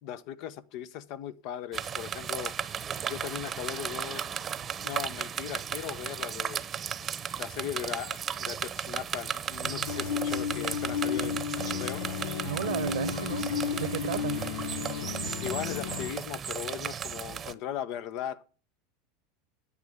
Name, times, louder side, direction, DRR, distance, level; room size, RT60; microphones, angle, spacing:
voice 1, 0.0-2.5 3.1-4.2 4.8-6.6 7.4-12.1 15.4-18.4, left 10 dB, 55° left, 1.1 m, -38 dB
sound 1, 1.7-17.5, right 8 dB, 25° right, 0.9 m, -35 dB
sound 2, 9.6-16.1, left 7 dB, 85° left, 1.0 m, -33 dB
voice 2, 12.4-14.4, right 14 dB, 85° right, 0.9 m, -35 dB
10.0 x 9.0 x 7.3 m
supercardioid pair, 130°, 0 cm